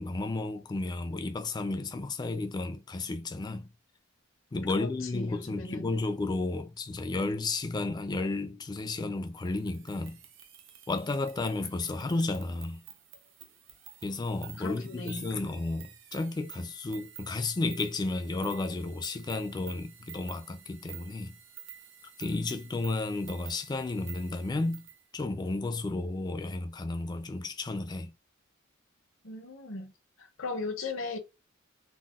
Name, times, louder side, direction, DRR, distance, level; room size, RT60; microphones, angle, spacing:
voice 1, 0.0-3.7 4.5-10.2 10.9-12.8 14.0-21.3 22.2-24.8 25.1-28.1, left 2 dB, 20° left, 0.3 m, -32 dB
voice 2, 4.7-5.9 14.6-15.3 29.2-29.9 30.2-31.2, left 3 dB, 70° left, 0.7 m, -37 dB
sound 1, 9.4-25.0, right 10 dB, 65° right, 0.6 m, -50 dB
3.9 x 2.1 x 2.3 m
head